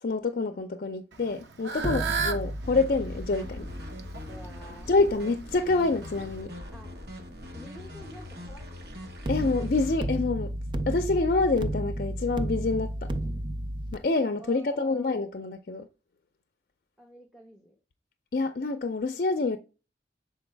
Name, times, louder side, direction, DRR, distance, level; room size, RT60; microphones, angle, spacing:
voice 1, 0.0-3.7 4.9-6.5 9.3-10.5 10.9-13.1 13.9-15.9 18.3-19.6, left 3 dB, 50° left, 0.5 m, -27 dB
Fowl / Bird, 1.1-6.4, right 5 dB, 85° right, 0.9 m, -36 dB
sound 1, 1.8-6.9 9.3-14.0, right 1 dB, 25° right, 0.4 m, -34 dB
sound 2, 2.6-10.0, left 1 dB, 70° right, 1.5 m, -42 dB
voice 2, 4.3-4.9 6.7-6.9 7.5-8.9 14.4-15.1 17.0-17.7, equal, ahead, 1.1 m, -49 dB
7.0 x 4.6 x 3.3 m
head